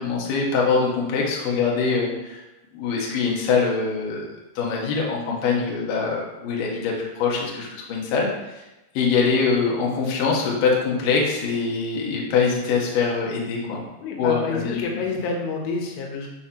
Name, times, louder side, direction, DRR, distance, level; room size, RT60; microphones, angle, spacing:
voice 1, 0.0-2.4 2.7-4.2 4.6-8.6 8.9-13.8 14.2-15.0, left 5 dB, 60° left, -3 dB, 2.5 m, -23 dB
voice 2, 14.0-16.3, left 4 dB, 85° left, 0 dB, 3.8 m, -28 dB
12.5 x 5.4 x 3.0 m, 1.0 s
omnidirectional pair, 5.6 m